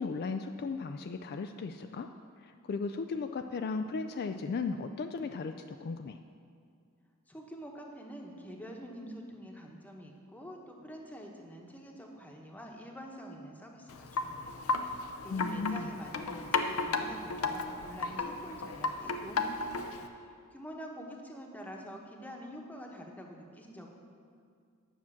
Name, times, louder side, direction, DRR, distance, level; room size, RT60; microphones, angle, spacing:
voice 1, 0.0-2.1 2.4-6.2 15.3-15.9, left 4 dB, 50° left, 7 dB, 0.3 m, -36 dB
voice 2, 7.3-19.8 20.1-23.9, equal, 10° left, 1 dB, 1.0 m, -46 dB
Wind chime, 13.9-20.1, left 4 dB, 80° left, 0.7 m, -34 dB
10.0 x 5.9 x 7.2 m, 2.2 s
head